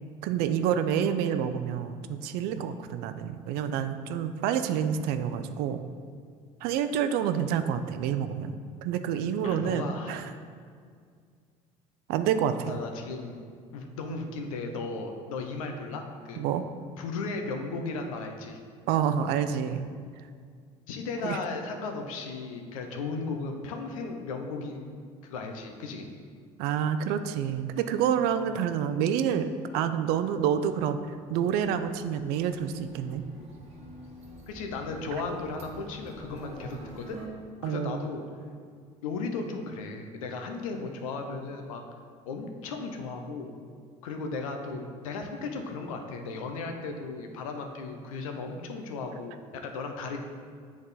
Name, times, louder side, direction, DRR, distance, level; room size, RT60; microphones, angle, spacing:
voice 1, 0.2-5.8 6.6-8.5 8.8-10.3 12.1-12.8 16.4-16.6 18.9-19.9 21.2-21.4 26.6-31.0 31.3-33.2 37.6-38.0, right 8 dB, 70° right, 9 dB, 0.4 m, -28 dB
voice 2, 9.4-10.2 12.7-13.5 13.7-16.4 17.0-18.6 20.9-25.0 25.2-26.1 34.5-37.2 37.6-38.2 39.0-41.8 42.3-43.5 44.0-50.2, left 3 dB, 90° left, 4 dB, 0.6 m, -36 dB
sound 1, 30.9-37.3, right 1 dB, 40° right, 1.4 m, -48 dB
7.8 x 3.6 x 4.0 m, 2.1 s
hypercardioid pair, 70°, 17 cm